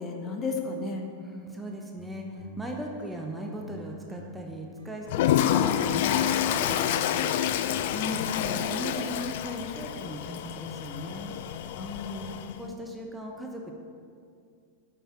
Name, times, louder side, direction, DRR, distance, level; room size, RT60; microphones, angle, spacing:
voice 1, 0.0-1.1 7.9-8.6 11.8-12.5, left 3 dB, 25° left, 2 dB, 1.4 m, -34 dB
voice 2, 1.2-7.3 8.3-11.3 12.6-13.7, right 1 dB, 5° right, 1 dB, 1.1 m, -38 dB
sound 1, 1.9-8.4, equal, 90° left, 3.0 m, -48 dB
Toilet flush, 5.1-12.6, left 10 dB, 50° left, 0.5 m, -28 dB
8.7 x 7.3 x 7.5 m, 2.3 s
figure-of-eight pair, 90°, 0 cm